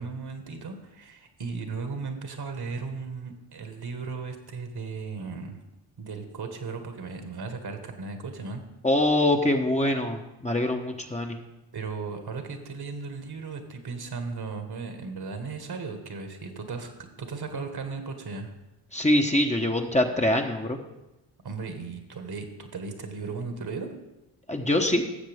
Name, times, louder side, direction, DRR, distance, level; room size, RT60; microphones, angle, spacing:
voice 1, 0.0-5.6 6.0-8.6 11.7-16.9 17.2-18.5 21.4-23.9, right 4 dB, 50° right, 5 dB, 1.8 m, -36 dB
voice 2, 8.8-11.4 18.9-20.8 24.5-25.0, left 1 dB, 15° left, 3 dB, 1.2 m, -24 dB
15.0 x 7.2 x 3.6 m, 0.98 s
supercardioid pair, 45°, 47 cm